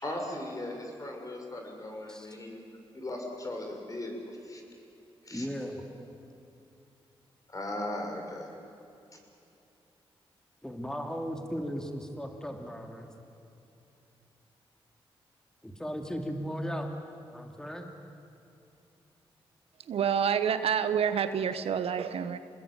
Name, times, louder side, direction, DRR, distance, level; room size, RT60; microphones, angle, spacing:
voice 1, 0.0-2.6 2.9-4.6 5.2-5.5 7.5-8.5, left 1 dB, 35° left, 2 dB, 6.2 m, -38 dB
voice 2, 5.3-5.8 10.6-13.1 15.6-16.9 17.3-17.9, equal, 5° left, 3 dB, 3.2 m, -36 dB
voice 3, 19.9-22.4, right 8 dB, 80° right, 11 dB, 1.2 m, -28 dB
28.0 x 19.5 x 9.0 m, 2.7 s
cardioid pair, 70°, 10 cm